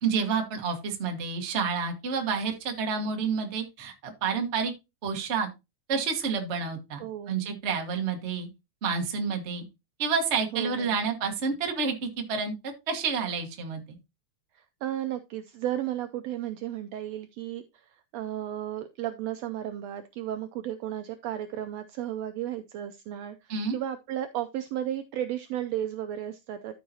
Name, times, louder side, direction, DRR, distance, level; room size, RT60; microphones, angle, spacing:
voice 1, 0.0-4.7 5.0-5.5 5.9-8.5 8.8-9.6 10.0-13.8 23.5-23.8, right 5 dB, 40° right, 4 dB, 1.0 m, -29 dB
voice 2, 7.0-7.3 10.5-11.0 14.5-26.7, right 11 dB, 80° right, 9 dB, 1.5 m, -34 dB
13.0 x 5.6 x 2.8 m, 0.24 s
omnidirectional pair, 3.4 m